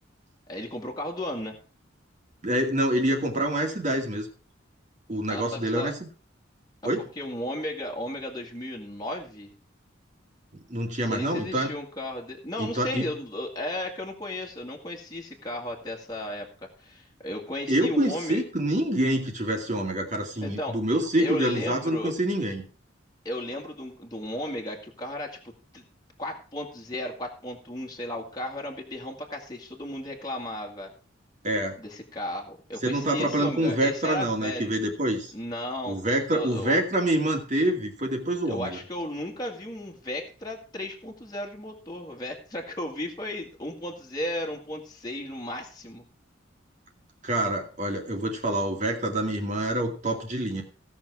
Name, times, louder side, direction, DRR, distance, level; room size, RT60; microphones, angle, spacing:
voice 1, 0.5-1.6 5.3-5.9 6.8-9.5 11.1-18.4 20.4-20.8 21.2-22.2 23.2-25.9 26.2-30.9 31.8-34.7 35.3-36.0 36.3-36.8 38.4-46.1, left 1 dB, 20° left, 0 dB, 1.9 m, -35 dB
voice 2, 2.4-4.3 5.1-5.9 6.8-7.0 10.7-11.7 12.6-13.0 17.7-22.6 31.4-31.8 32.8-35.3 35.9-38.8 47.2-50.6, right 1 dB, 40° right, 2 dB, 2.3 m, -26 dB
16.5 x 6.3 x 4.7 m, 0.38 s
head